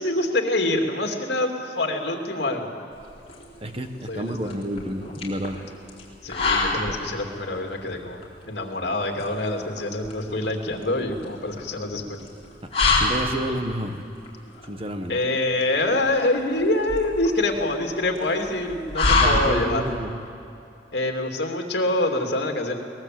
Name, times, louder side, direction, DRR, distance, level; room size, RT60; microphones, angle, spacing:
voice 1, 0.0-2.8 4.1-4.4 6.2-12.3 15.1-19.8 20.9-22.8, left 2 dB, 65° left, 3 dB, 2.8 m, -25 dB
sound 1, 2.9-20.0, left 3 dB, 35° left, 3.9 m, -28 dB
voice 2, 3.6-5.6 12.9-14.1 14.7-15.2 19.2-20.2, right 1 dB, 30° right, 6 dB, 1.5 m, -30 dB
22.5 x 20.0 x 7.9 m, 2.7 s
head